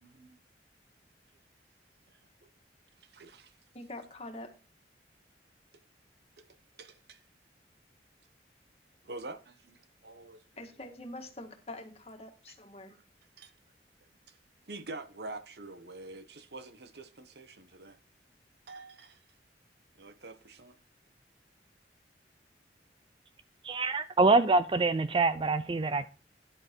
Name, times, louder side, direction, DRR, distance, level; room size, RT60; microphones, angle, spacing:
voice 1, 0.0-0.4 2.1-2.5 3.0-3.6 6.4-6.5 6.8-7.2 9.0-10.6 12.5-12.6 12.9-13.0 13.4-13.5 14.3-14.4 14.7-18.0 18.7-19.2 20.0-20.7, right 2 dB, 65° right, 1.1 m, -46 dB
voice 2, 3.7-4.5 10.6-13.0, left 1 dB, 35° left, 1.8 m, -45 dB
voice 3, 23.6-26.1, right 3 dB, 30° right, 0.5 m, -25 dB
11.0 x 7.5 x 4.5 m
head